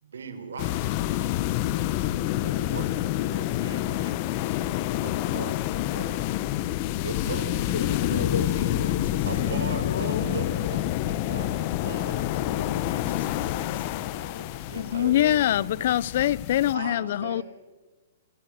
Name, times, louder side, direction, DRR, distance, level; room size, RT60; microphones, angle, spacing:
voice 1, 0.0-1.5 2.4-4.6 5.0-6.4 7.0-8.3 9.3-12.4 14.6-15.3 16.7-17.4, right 5 dB, 85° right, 4.5 m, -39 dB
sound 1, 0.6-16.7, left 14 dB, 40° left, 1.0 m, -28 dB
voice 2, 7.7-10.3 12.3-14.5, left 4 dB, 80° left, 4.0 m, -36 dB
voice 3, 14.8-17.4, left 12 dB, 55° left, 0.8 m, -24 dB
27.5 x 16.5 x 6.5 m
hypercardioid pair, 140°, 0 cm